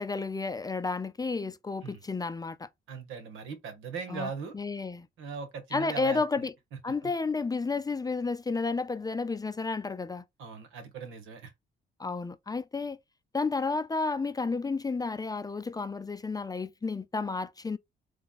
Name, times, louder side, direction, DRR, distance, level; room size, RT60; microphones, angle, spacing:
voice 1, 0.0-2.7 4.1-5.1 5.7-6.5 6.8-10.2 12.0-13.0 13.3-17.8, left 4 dB, 20° left, 0.4 m, -31 dB
voice 2, 2.9-4.5 5.2-6.5 7.0-7.1 10.4-11.5, right 5 dB, 85° right, 1.5 m, -39 dB
3.4 x 3.3 x 4.0 m
cardioid pair, 90°, 20 cm